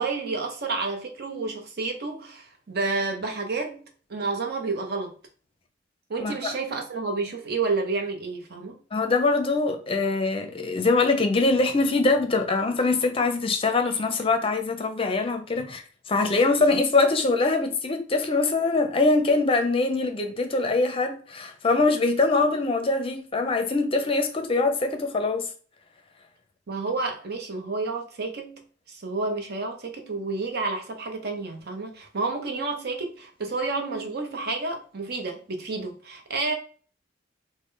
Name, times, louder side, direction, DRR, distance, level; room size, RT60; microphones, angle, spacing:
voice 1, 0.0-3.8 4.1-5.1 6.1-8.8 26.7-36.5, right 3 dB, 55° right, 0.8 m, -30 dB
voice 2, 8.9-15.8 16.1-25.5, left 3 dB, 30° left, 0.6 m, -23 dB
3.8 x 2.1 x 3.7 m
head